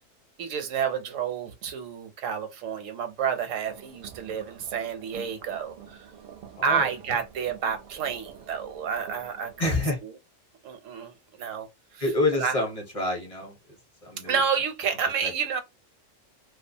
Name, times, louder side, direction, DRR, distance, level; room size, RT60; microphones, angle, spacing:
voice 1, 0.4-6.1 6.6-9.5 10.6-11.7 11.9-12.0 12.3-12.5 14.2-15.6, right 6 dB, 80° right, 1.0 m, -29 dB
sound 1, 3.6-9.9, right 8 dB, 60° right, 0.6 m, -48 dB
voice 2, 6.6-7.2 9.6-10.0 12.0-13.6 14.0-14.4 15.2-15.3, left 2 dB, 30° left, 0.8 m, -28 dB
2.3 x 2.3 x 2.6 m
omnidirectional pair, 1.3 m